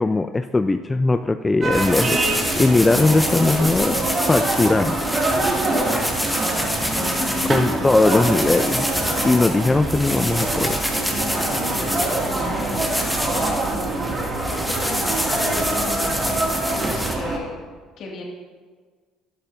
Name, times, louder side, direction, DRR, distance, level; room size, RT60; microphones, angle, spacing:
voice 1, 0.0-2.2 2.6-4.9 7.5-8.9 9.2-10.8, left 3 dB, 20° left, 10 dB, 0.4 m, -19 dB
sound 1, 1.6-17.4, right 2 dB, 40° right, 2.4 m, -25 dB
sound 2, 1.7-17.1, equal, ahead, 1.9 m, -27 dB
voice 2, 5.4-7.5 11.3-13.6 14.5-17.5 18.0-18.2, left 3 dB, 55° left, -1 dB, 2.3 m, -35 dB
11.5 x 11.0 x 2.7 m, 1.5 s
hypercardioid pair, 60°, 0 cm